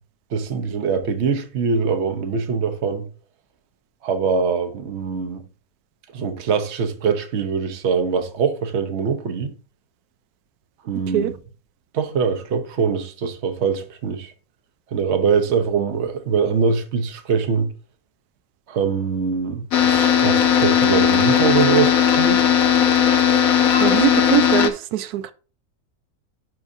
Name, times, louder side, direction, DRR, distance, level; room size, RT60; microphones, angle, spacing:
voice 1, 0.3-3.1 4.0-5.4 6.1-9.5 10.8-11.3 11.9-14.3 14.9-17.7 18.7-22.4, right 5 dB, 55° right, 1.1 m, -23 dB
sound 1, 19.7-24.7, left 8 dB, 70° left, 1.3 m, -17 dB
voice 2, 23.8-25.3, right 12 dB, 90° right, 1.1 m, -22 dB
11.0 x 4.8 x 2.7 m
omnidirectional pair, 1.6 m